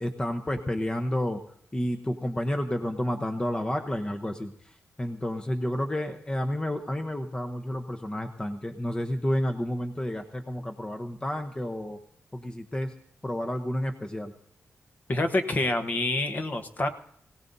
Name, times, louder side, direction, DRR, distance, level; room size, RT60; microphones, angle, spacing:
voice 1, 0.0-1.4 1.7-12.0 12.3-12.9 13.2-14.3, left 1 dB, 15° left, 5 dB, 0.9 m, -30 dB
voice 2, 15.1-16.9, left 2 dB, 35° left, 7 dB, 1.1 m, -27 dB
22.5 x 17.0 x 2.7 m, 0.66 s
wide cardioid pair, 100°, 5 cm